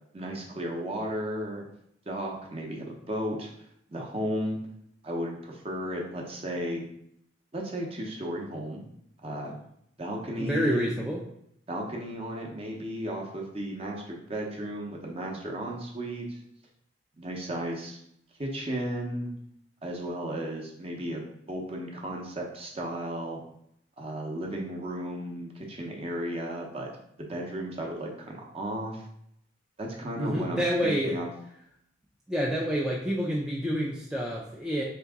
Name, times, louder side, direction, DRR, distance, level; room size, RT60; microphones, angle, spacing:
voice 1, 0.1-1.6 2.1-3.5 3.9-4.6 5.0-6.8 7.5-8.8 9.2-9.6 10.0-11.0 11.7-16.4 17.2-18.0 18.4-19.3 19.8-23.4 24.0-26.9 27.2-29.1 29.8-31.3, right 1 dB, 30° right, 0 dB, 0.7 m, -34 dB
voice 2, 10.4-11.2 30.2-31.2 32.3-34.8, equal, 5° right, -4 dB, 0.4 m, -28 dB
3.6 x 2.9 x 3.5 m, 0.72 s
head